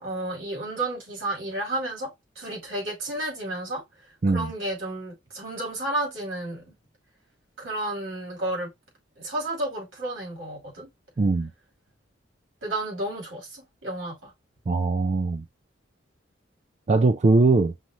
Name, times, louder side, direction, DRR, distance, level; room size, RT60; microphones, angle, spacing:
voice 1, 0.0-3.8 4.3-6.6 7.6-8.7 9.2-10.9 12.6-14.3, right 1 dB, 90° right, 3.1 m, -32 dB
voice 2, 11.2-11.5 14.7-15.4 16.9-17.7, right 3 dB, 35° right, 0.4 m, -21 dB
5.5 x 2.5 x 3.0 m
head